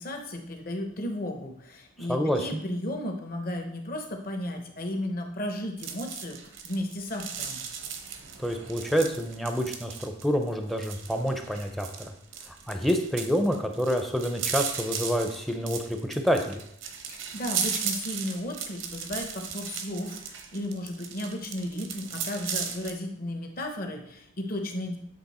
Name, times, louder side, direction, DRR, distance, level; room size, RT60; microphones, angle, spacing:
voice 1, 0.0-7.6 17.1-25.0, left 1 dB, 45° left, 3 dB, 1.0 m, -34 dB
voice 2, 2.1-2.6 8.4-12.1 12.5-16.6, equal, ahead, 5 dB, 0.5 m, -28 dB
sound 1, 5.8-22.9, right 7 dB, 75° right, 0.8 m, -36 dB
8.2 x 3.4 x 4.2 m, 0.72 s
head